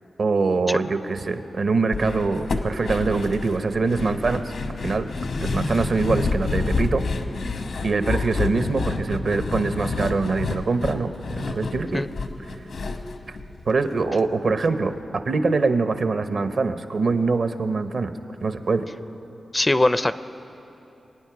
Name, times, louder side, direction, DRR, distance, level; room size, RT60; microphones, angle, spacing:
voice 1, 0.2-4.4 4.8-5.1 5.4-7.0 7.8-12.0 13.3-13.4 13.7-18.1 18.4-18.8, right 4 dB, 65° right, 10 dB, 0.8 m, -23 dB
sound 1, 1.9-14.2 14.5-14.6 14.9-15.0, left 3 dB, 80° left, 1.0 m, -29 dB
voice 2, 19.5-20.2, left 1 dB, 20° left, 13 dB, 0.4 m, -21 dB
24.0 x 9.2 x 5.9 m, 2.9 s
wide cardioid pair, 80°, 0 cm